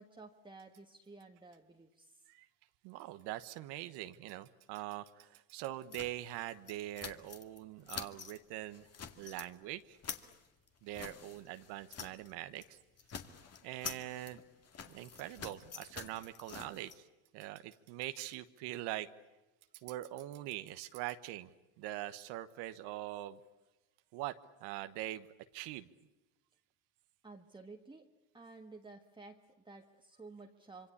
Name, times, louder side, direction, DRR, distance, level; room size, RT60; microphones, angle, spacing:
voice 1, 0.0-2.1 27.2-28.1 28.3-30.9, right 3 dB, 10° right, 3 dB, 1.5 m, -53 dB
voice 2, 2.8-8.9 9.2-10.0 10.8-12.8 13.6-14.4 14.9-17.1 17.3-19.1 19.8-23.4 24.1-24.3 24.6-25.3 25.5-25.9, right 14 dB, 75° right, 10 dB, 1.3 m, -43 dB
sound 1, 5.9-7.6 7.9-8.4 8.7-9.5 9.8-12.3 12.6-12.7 13.0-16.9, left 6 dB, 35° left, 2.2 m, -47 dB
26.0 x 24.5 x 8.6 m, 1.0 s
supercardioid pair, 95°, 40 cm